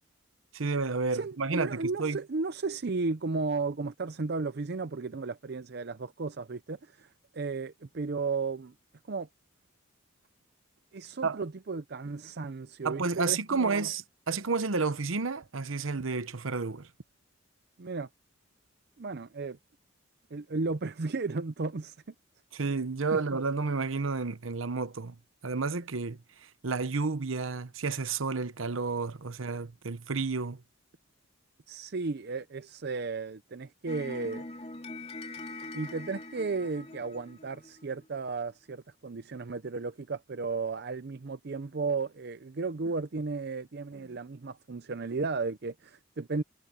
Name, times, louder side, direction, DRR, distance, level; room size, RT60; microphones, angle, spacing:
voice 1, 0.5-2.2 11.2-11.4 12.8-16.9 22.5-25.2 25.4-26.2 26.6-30.6, right 4 dB, 75° right, 1.0 m, -31 dB
voice 2, 1.1-7.1 7.3-8.7 9.1-9.3 10.9-13.9 17.8-18.1 19.0-19.6 20.3-21.9 23.1-23.2 31.7-34.4 35.7-46.4, right 4 dB, 50° right, 0.6 m, -34 dB
sound 1, 33.9-38.2, left 2 dB, 30° left, 3.2 m, -43 dB
head